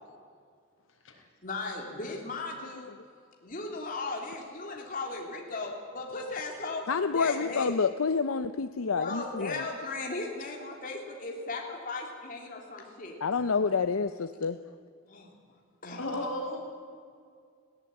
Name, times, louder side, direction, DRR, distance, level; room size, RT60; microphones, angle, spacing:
voice 1, 1.4-2.9 3.4-6.9 7.1-7.7 8.9-13.2 15.1-15.3 15.8-16.1, left 3 dB, 40° left, 0 dB, 3.2 m, -37 dB
voice 2, 6.9-9.6 13.2-14.6, left 5 dB, 80° left, 10 dB, 0.6 m, -28 dB
voice 3, 16.0-16.6, left 1 dB, 65° left, 1 dB, 5.2 m, -34 dB
19.5 x 17.0 x 9.0 m, 2.1 s
head